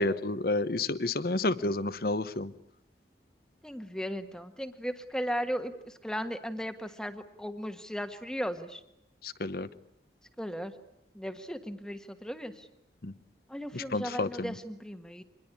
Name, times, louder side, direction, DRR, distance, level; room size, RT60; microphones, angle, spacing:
voice 1, 0.0-2.5 9.2-9.7 13.0-13.1 13.7-14.5, left 2 dB, 55° left, 13 dB, 0.9 m, -30 dB
voice 2, 3.6-8.8 10.4-10.7 11.1-12.7 13.5-15.2, equal, 5° left, 8 dB, 1.4 m, -36 dB
25.5 x 21.0 x 9.8 m, 0.82 s
head